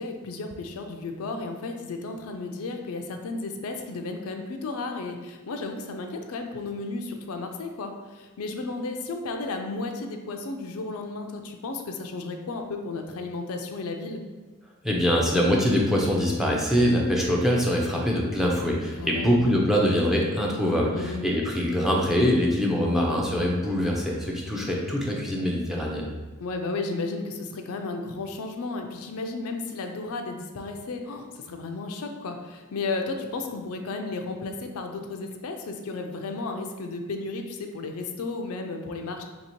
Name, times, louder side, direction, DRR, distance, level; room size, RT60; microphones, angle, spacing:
voice 1, 0.0-14.2 19.0-19.3 20.9-21.2 26.4-39.2, left 3 dB, 70° left, 4 dB, 0.4 m, -33 dB
voice 2, 14.8-26.1, equal, ahead, -3 dB, 0.5 m, -23 dB
2.9 x 2.8 x 4.3 m, 1.2 s
head